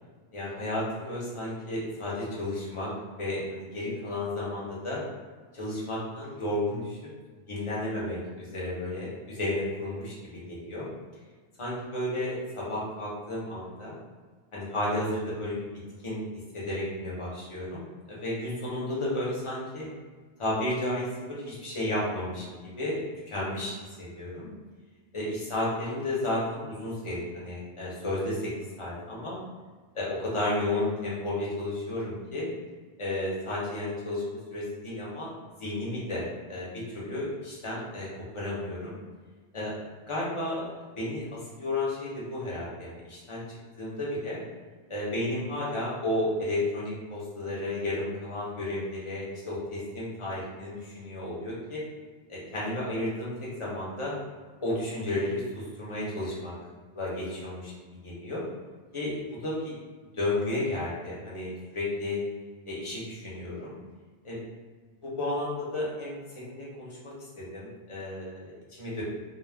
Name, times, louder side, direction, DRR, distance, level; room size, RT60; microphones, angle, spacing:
voice 1, 0.3-2.9 3.2-5.0 5.5-7.0 7.5-10.9 11.6-14.0 14.5-15.6 16.0-16.2 16.5-19.9 20.4-24.5 25.1-28.5 28.8-29.4 29.9-32.5 33.0-35.3 35.6-36.2 36.5-38.1 38.3-39.0 39.5-39.8 40.1-40.6 41.0-43.4 43.8-44.4 44.9-51.8 52.3-53.3 53.6-54.1 54.6-56.5 56.9-57.7 58.0-58.4 58.9-59.7 60.1-62.2 62.7-63.8 64.2-64.4 65.0-69.0, left 1 dB, 30° left, -7 dB, 0.8 m, -32 dB
2.3 x 2.1 x 3.3 m, 1.4 s
omnidirectional pair, 1.1 m